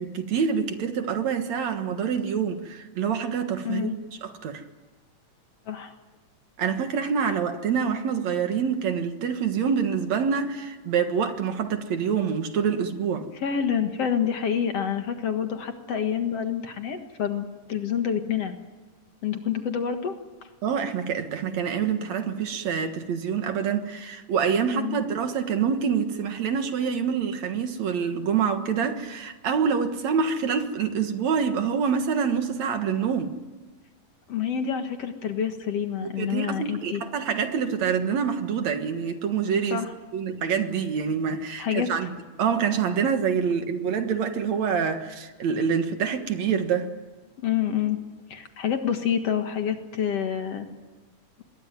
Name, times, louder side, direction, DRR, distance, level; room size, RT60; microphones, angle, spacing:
voice 1, 0.0-4.6 6.6-13.3 20.6-33.4 36.2-39.8 40.1-42.1 42.4-46.9, right 6 dB, 65° right, 2.7 m, -26 dB
voice 2, 3.6-4.0 5.7-5.9 13.3-18.6 19.2-20.2 24.7-25.0 34.3-37.0 39.7-39.9 41.6-41.9 47.4-48.0 48.3-50.7, left 8 dB, 55° left, 2.5 m, -27 dB
26.0 x 21.5 x 9.1 m
omnidirectional pair, 3.6 m